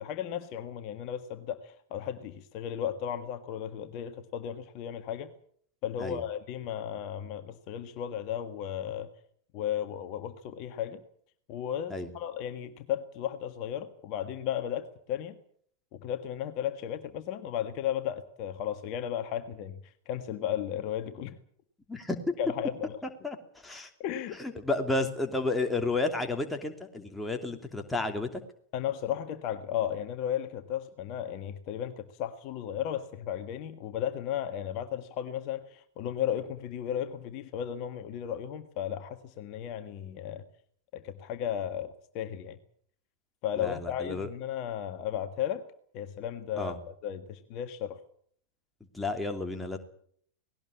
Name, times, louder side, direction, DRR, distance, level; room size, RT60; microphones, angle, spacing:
voice 1, 0.0-5.3 5.8-9.1 9.5-11.0 11.5-15.4 15.9-19.8 20.1-21.4 22.4-23.0 24.0-24.4 28.7-40.4 40.9-42.6 43.4-45.6 45.9-46.7 47.0-48.0, left 10 dB, 40° left, 8 dB, 1.6 m, -34 dB
voice 2, 21.9-22.3 23.2-23.9 24.4-28.4 43.6-44.3 46.6-46.8 48.9-49.8, left 2 dB, 5° left, 4 dB, 2.9 m, -31 dB
19.0 x 18.0 x 8.6 m, 0.62 s
figure-of-eight pair, 90°, 0 cm